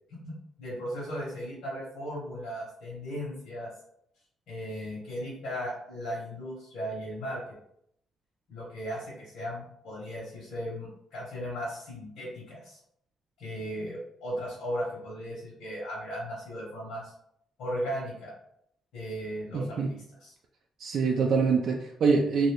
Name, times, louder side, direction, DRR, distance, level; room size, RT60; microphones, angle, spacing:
voice 1, 0.2-3.7 4.5-7.4 8.5-12.8 13.4-17.1 17.6-18.3 18.9-19.8 20.2-20.3, equal, 90° left, -6 dB, 1.2 m, -36 dB
voice 2, 19.5-19.9 20.8-22.5, right 5 dB, 60° right, 0 dB, 0.4 m, -25 dB
2.6 x 2.6 x 3.4 m, 0.72 s
cardioid pair, 90°, 0 cm